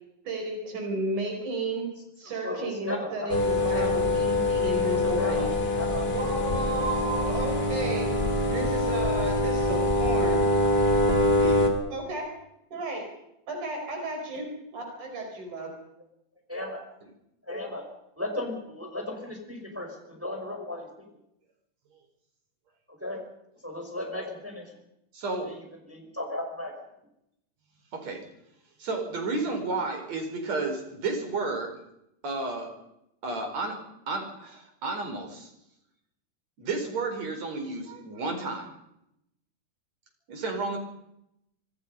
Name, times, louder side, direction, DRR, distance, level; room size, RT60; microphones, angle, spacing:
voice 1, 0.3-1.9 2.2-5.5 6.1-8.2 8.4-10.4 11.4-11.6 11.9-12.4 12.7-13.1 13.5-14.5 14.7-15.7, right 2 dB, 80° right, 3 dB, 6.3 m, -33 dB
voice 2, 2.4-3.4 3.7-4.0 5.0-6.1 16.5-16.8 17.5-17.8 18.2-21.1 23.0-23.2 23.6-24.7 25.4-25.6 25.9-26.7, left 1 dB, 5° right, 2 dB, 5.2 m, -35 dB
sound 1, 3.3-11.7, left 1 dB, 20° left, 3.7 m, -24 dB
voice 3, 25.1-25.5 27.9-28.2 28.8-31.7 32.2-32.8 33.2-35.5 36.6-38.7 40.3-40.8, right 3 dB, 60° right, 5 dB, 5.9 m, -32 dB
25.0 x 25.0 x 5.6 m, 0.81 s
omnidirectional pair, 3.5 m